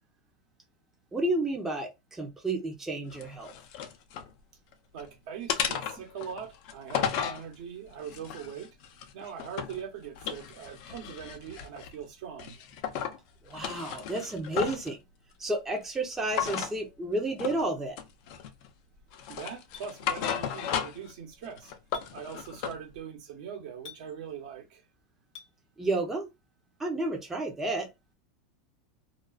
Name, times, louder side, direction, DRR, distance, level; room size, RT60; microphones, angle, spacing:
voice 1, 1.1-3.5 13.4-15.0 15.4-18.0 25.8-26.3 26.8-27.9, right 2 dB, 10° right, 0.6 m, -31 dB
sound 1, 3.1-4.3 4.7-5.1 5.5-7.4 8.0-9.8 10.1-12.0 12.4-13.2 13.5-14.9 16.3-16.7 17.4-17.6 18.0-18.7 19.1-21.1 21.4-22.8, left 8 dB, 55° left, 0.5 m, -34 dB
voice 2, 4.9-8.8 9.1-12.6 19.3-21.7 22.1-24.8, right 7 dB, 65° right, 0.9 m, -41 dB
Chink clink, 19.7-19.9 21.9-22.1 23.8-24.0 25.3-25.5, left 7 dB, 80° left, 0.8 m, -46 dB
2.4 x 2.3 x 2.3 m
supercardioid pair, 135°, 4 cm